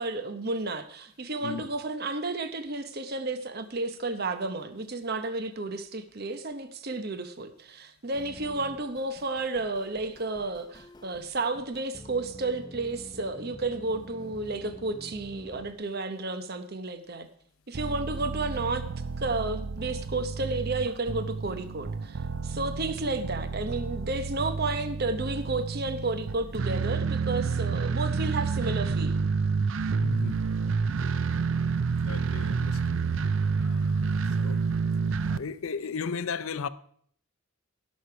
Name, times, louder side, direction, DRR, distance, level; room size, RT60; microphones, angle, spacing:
voice 1, 0.0-17.3 17.7-18.8 19.2-29.2, right 3 dB, 45° right, 0.9 m, -32 dB
voice 2, 1.4-1.7 30.0-30.4 32.0-33.0 33.6-34.6 35.2-36.7, left 5 dB, 75° left, 0.6 m, -36 dB
sound 1, 8.1-15.7, left 1 dB, 20° left, 0.7 m, -47 dB
sound 2, 17.7-35.4, right 5 dB, 60° right, 0.5 m, -29 dB
16.5 x 6.5 x 5.8 m
head